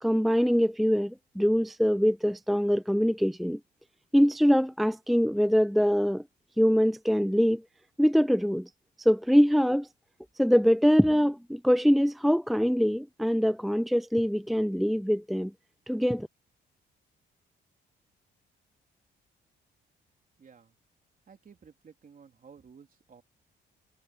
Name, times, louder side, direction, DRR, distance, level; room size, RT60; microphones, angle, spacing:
voice 1, 0.0-3.6 4.1-6.2 6.6-7.6 8.0-8.7 9.0-9.9 10.4-15.5 15.9-16.3, equal, ahead, 0.5 m, -23 dB
voice 2, 20.4-20.8 21.3-23.2, right 6 dB, 45° right, 3.6 m, -54 dB
cardioid pair, 90°, 20 cm